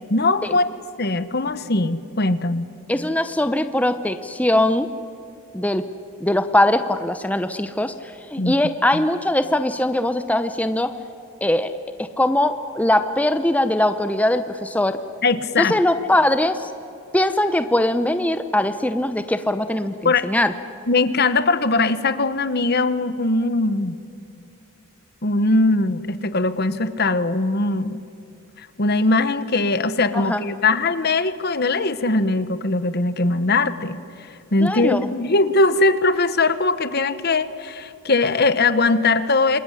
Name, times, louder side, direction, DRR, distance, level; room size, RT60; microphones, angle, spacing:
voice 1, 0.1-0.7 1.0-2.7 8.4-8.5 8.9-9.0 15.2-15.8 20.0-20.3 20.9-24.0 25.2-28.0 28.8-34.0 34.5-39.6, left 3 dB, 50° left, 13 dB, 1.2 m, -20 dB
voice 2, 2.9-4.9 5.5-5.8 6.2-10.9 11.4-11.7 12.0-15.0 15.6-16.7 17.1-20.5 30.1-30.4 34.6-35.1, left 1 dB, 5° left, 9 dB, 0.7 m, -21 dB
27.5 x 21.5 x 10.0 m, 2.8 s
head